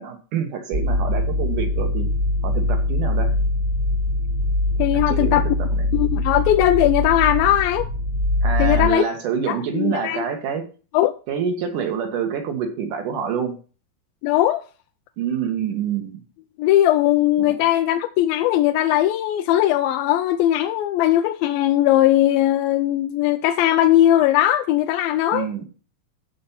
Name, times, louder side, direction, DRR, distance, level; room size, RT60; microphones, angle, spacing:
voice 1, 0.0-2.1 2.4-3.3 4.9-5.9 8.4-10.6 11.3-13.5 15.2-16.2 17.4-17.6 25.3-25.6, right 7 dB, 65° right, 3.1 m, -27 dB
sound 1, 0.7-8.9, left 1 dB, 50° right, 1.0 m, -22 dB
voice 2, 4.8-5.5 5.9-7.9 8.6-9.1 9.5-10.2 10.9-11.1 14.2-14.6 16.6-25.5, left 13 dB, 90° left, 2.4 m, -19 dB
14.0 x 5.3 x 5.7 m
omnidirectional pair, 4.1 m